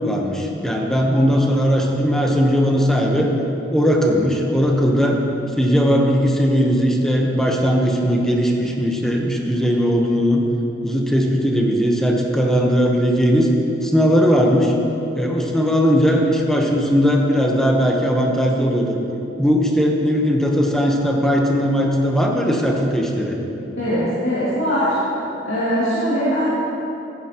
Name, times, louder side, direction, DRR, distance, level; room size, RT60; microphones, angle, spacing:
voice 1, 0.0-3.3 3.7-5.2 5.6-10.4 10.8-13.5 13.8-14.7 15.1-19.0 19.4-23.4, equal, 5° left, 0 dB, 1.0 m, -18 dB
voice 2, 23.8-24.9 25.4-26.5, equal, 70° left, -12 dB, 2.6 m, -21 dB
15.0 x 8.9 x 3.0 m, 3.0 s
head